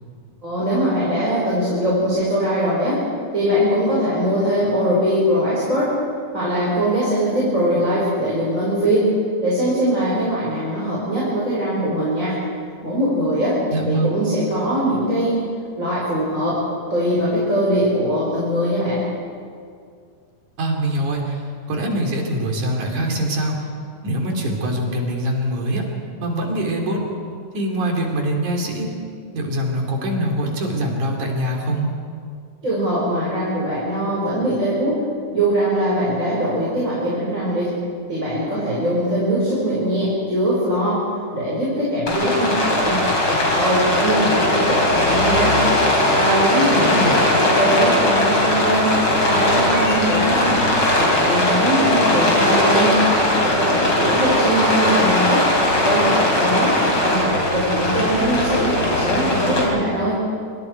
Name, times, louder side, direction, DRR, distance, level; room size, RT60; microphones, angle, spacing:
voice 1, 0.4-3.0 3.3-6.0 6.3-9.1 9.4-12.4 12.8-13.6 13.9-15.4 15.8-16.6 16.9-19.0 32.6-35.0 35.3-37.7 38.1-41.0 41.3-45.6 46.1-50.6 51.0-53.0 53.4-55.5 55.8-60.2, equal, 25° right, -8 dB, 5.7 m, -21 dB
voice 2, 13.7-14.2 20.6-23.7 24.0-25.9 26.2-27.0 27.5-28.9 29.3-31.9 46.9-47.1, right 1 dB, 70° right, 1 dB, 4.6 m, -23 dB
Rain, 42.1-59.6, left 1 dB, 40° left, 5.2 m, -19 dB
27.0 x 26.0 x 4.7 m, 2.2 s
omnidirectional pair, 3.6 m